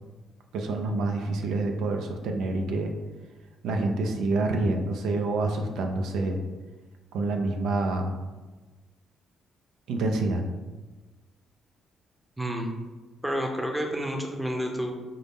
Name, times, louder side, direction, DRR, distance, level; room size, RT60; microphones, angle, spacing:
voice 1, 0.5-2.9 3.6-6.4 7.1-8.1 9.9-10.4, right 2 dB, 85° right, 3 dB, 0.4 m, -27 dB
voice 2, 12.4-12.7 13.2-14.9, equal, 10° right, 2 dB, 0.6 m, -29 dB
5.2 x 2.1 x 3.4 m, 1.2 s
cardioid pair, 90°, 0 cm